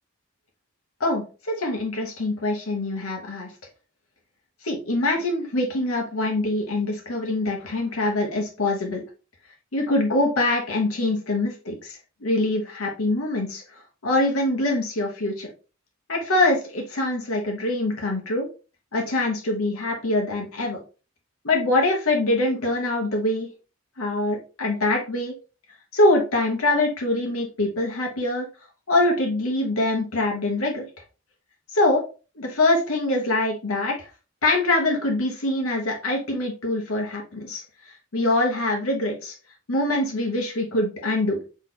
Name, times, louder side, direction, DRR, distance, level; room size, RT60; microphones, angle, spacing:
voice 1, 1.0-3.5 4.6-9.0 9.7-15.5 16.1-18.5 18.9-20.8 21.4-23.5 24.0-25.3 25.9-28.5 28.9-30.9 31.7-32.0 32.4-33.9 34.4-37.6 38.1-39.3 39.7-41.4, left 2 dB, 85° left, 1 dB, 1.2 m, -24 dB
3.9 x 3.3 x 3.2 m, 0.33 s
head